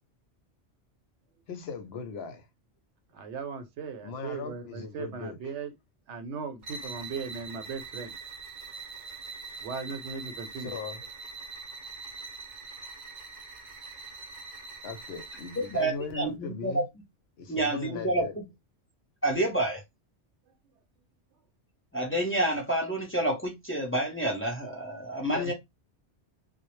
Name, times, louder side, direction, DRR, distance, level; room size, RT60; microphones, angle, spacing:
voice 1, 1.5-2.5 4.0-5.4 10.7-11.1 14.8-16.8 17.4-18.3 25.3-25.5, left 4 dB, 70° left, 0.8 m, -38 dB
voice 2, 3.1-5.7 6.1-8.1 9.6-10.7, right 5 dB, 80° right, 0.9 m, -38 dB
sound 1, 6.6-16.0, right 4 dB, 50° right, 0.6 m, -43 dB
voice 3, 15.6-16.8 17.5-18.4 19.2-19.8 21.9-25.5, right 1 dB, 15° left, 0.4 m, -29 dB
2.1 x 2.0 x 2.9 m
omnidirectional pair, 1.2 m